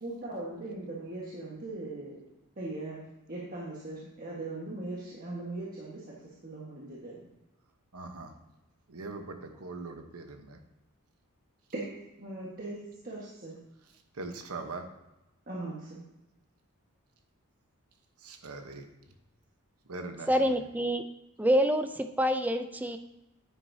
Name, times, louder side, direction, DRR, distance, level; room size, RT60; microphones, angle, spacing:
voice 1, 0.0-2.2 2.6-3.0 3.3-7.2 11.7-11.9 12.2-13.6 15.5-16.0, right 2 dB, 40° right, -5 dB, 1.5 m, -39 dB
voice 2, 7.9-8.3 8.9-10.6 14.1-14.9 18.2-18.9 19.9-20.6, right 3 dB, 80° right, 6 dB, 1.1 m, -41 dB
voice 3, 20.3-21.0 21.4-23.0, equal, 5° right, 8 dB, 0.4 m, -26 dB
9.7 x 9.5 x 2.8 m, 0.95 s
head